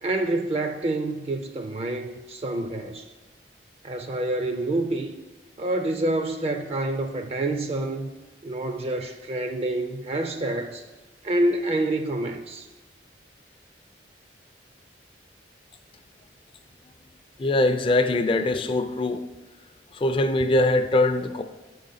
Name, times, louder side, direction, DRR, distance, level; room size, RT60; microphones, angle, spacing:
voice 1, 0.0-3.1 3.8-5.1 5.6-8.1 8.4-10.8 11.2-12.7, right 2 dB, 35° right, 0.4 m, -27 dB
voice 2, 17.4-19.2 19.9-21.4, left 2 dB, 30° left, 0.4 m, -22 dB
7.6 x 3.9 x 5.6 m
head